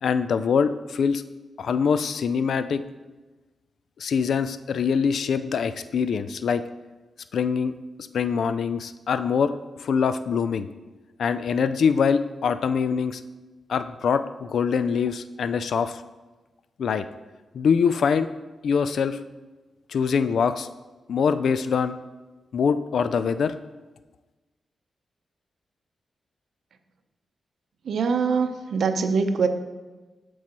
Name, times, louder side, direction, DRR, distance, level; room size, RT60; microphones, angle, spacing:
voice 1, 0.0-1.2 1.6-2.8 4.0-6.6 7.3-7.7 8.1-9.5 9.8-10.7 11.2-13.2 13.7-16.0 16.8-17.0 17.5-18.3 18.6-19.2 19.9-20.7 21.1-22.0 22.5-23.5, left 6 dB, 75° left, 12 dB, 0.3 m, -23 dB
voice 2, 27.8-29.5, right 5 dB, 75° right, 8 dB, 0.6 m, -23 dB
11.5 x 4.7 x 2.9 m, 1.2 s
cardioid pair, 75°, 0 cm